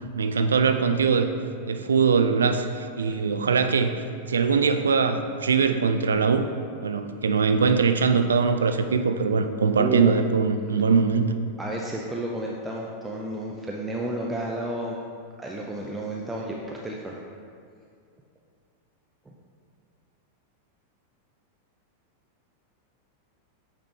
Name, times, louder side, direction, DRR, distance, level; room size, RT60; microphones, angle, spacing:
voice 1, 0.1-1.3 1.7-3.9 4.3-6.5 6.8-11.4, right 5 dB, 70° right, 8 dB, 0.3 m, -22 dB
voice 2, 9.8-10.1 11.6-15.0 15.4-17.2 19.3-19.4, right 1 dB, 10° right, -2 dB, 0.5 m, -31 dB
8.4 x 3.6 x 3.4 m, 2.3 s
figure-of-eight pair, 90°, 0 cm